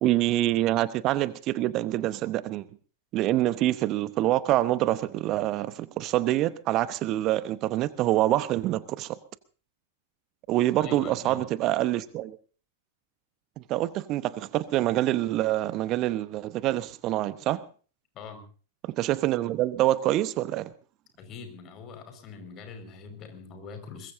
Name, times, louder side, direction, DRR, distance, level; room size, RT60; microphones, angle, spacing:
voice 1, 0.0-2.7 3.1-9.2 10.5-12.4 13.6-17.6 18.8-20.7, right 15 dB, 40° right, 0.9 m, -26 dB
voice 2, 10.8-11.5 18.1-18.4 21.2-24.1, left 5 dB, 35° left, 5.1 m, -43 dB
23.0 x 21.0 x 2.7 m
figure-of-eight pair, 95°, 0 cm